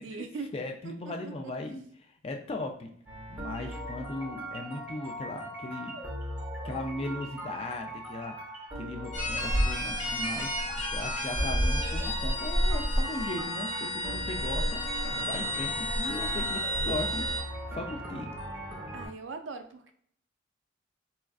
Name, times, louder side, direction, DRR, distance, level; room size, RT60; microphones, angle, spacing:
voice 1, 0.0-0.5 0.8-1.3 3.6-3.9 18.9-19.9, right 4 dB, 65° right, 7 dB, 0.4 m, -41 dB
voice 2, 0.5-2.9 3.3-6.0 6.6-8.4 8.8-14.8 15.2-17.4 17.7-18.3, left 2 dB, 30° left, 4 dB, 0.3 m, -38 dB
sound 1, 3.1-19.1, equal, 10° right, 0.9 m, -40 dB
sound 2, 9.1-17.4, equal, 75° left, 1.3 m, -30 dB
4.2 x 2.4 x 2.3 m, 0.64 s
head